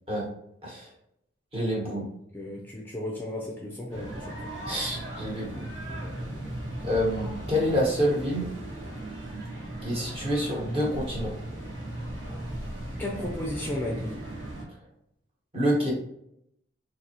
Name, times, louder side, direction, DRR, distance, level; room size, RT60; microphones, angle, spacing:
voice 1, 1.5-2.0 4.7-5.6 6.8-8.5 9.8-11.3 15.5-15.9, equal, 30° right, -4 dB, 1.3 m, -27 dB
voice 2, 2.3-4.4 13.0-14.2, left 1 dB, 10° left, -2 dB, 0.5 m, -34 dB
sound 1, 3.9-14.6, right 1 dB, 75° right, 1.5 m, -37 dB
4.0 x 2.9 x 2.9 m, 0.75 s
head